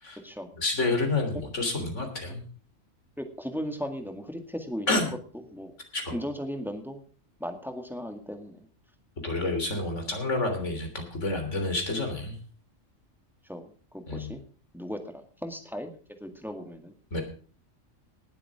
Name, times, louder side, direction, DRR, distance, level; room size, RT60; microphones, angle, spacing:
voice 1, 0.5-2.4 4.9-5.1 5.9-6.2 9.2-12.4 14.1-14.3 17.1-17.2, left 2 dB, 70° left, 4 dB, 3.7 m, -29 dB
voice 2, 3.2-5.1 5.3-5.7 6.1-7.0 7.4-8.6 10.6-10.7 13.4-14.4 14.7-15.9 16.2-16.9, equal, ahead, 5 dB, 1.9 m, -37 dB
19.0 x 7.7 x 4.9 m, 0.40 s
omnidirectional pair, 1.3 m